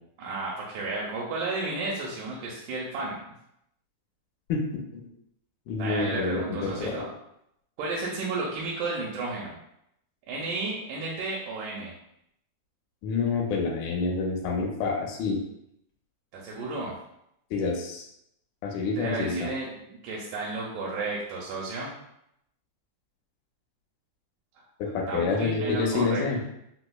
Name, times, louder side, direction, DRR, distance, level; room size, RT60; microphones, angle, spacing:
voice 1, 0.2-3.2 5.8-7.1 7.8-9.6 10.3-11.9 16.3-17.0 18.9-21.9 25.1-26.2, right 3 dB, 85° right, -4 dB, 2.1 m, -33 dB
voice 2, 4.5-4.8 5.7-6.9 13.0-15.4 17.5-18.1 18.6-19.5 24.8-26.4, left 4 dB, 80° left, 1 dB, 1.9 m, -28 dB
5.0 x 2.0 x 2.2 m, 0.79 s
omnidirectional pair, 3.6 m